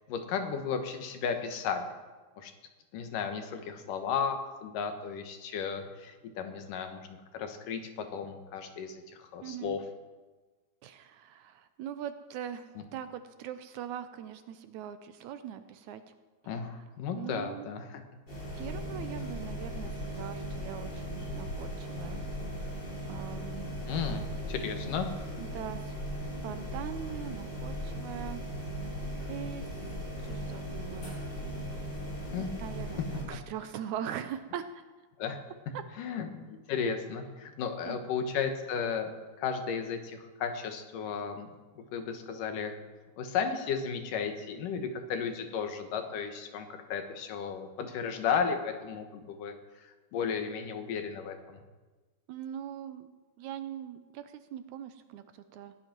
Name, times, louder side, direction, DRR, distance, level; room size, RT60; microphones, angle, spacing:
voice 1, 0.1-2.0 2.4-2.5 2.9-9.8 16.5-18.0 23.9-25.1 32.3-32.5 35.2-35.4 36.0-39.1 39.4-41.5 41.8-42.7 43.2-49.6 49.8-51.6, left 6 dB, 80° left, 6 dB, 2.9 m, -34 dB
voice 2, 9.4-9.8 10.8-16.0 17.1-17.7 18.6-22.2 23.1-23.7 25.4-25.9 26.4-28.4 28.7-29.0 29.3-29.7 30.2-31.2 32.6-34.8 35.7-35.8 37.9-38.0 52.3-53.1 53.4-55.8, right 9 dB, 75° right, 10 dB, 1.9 m, -41 dB
sound 1, 18.3-33.2, equal, 35° left, 4.3 m, -38 dB
17.0 x 10.5 x 6.0 m, 1.3 s
omnidirectional pair, 3.7 m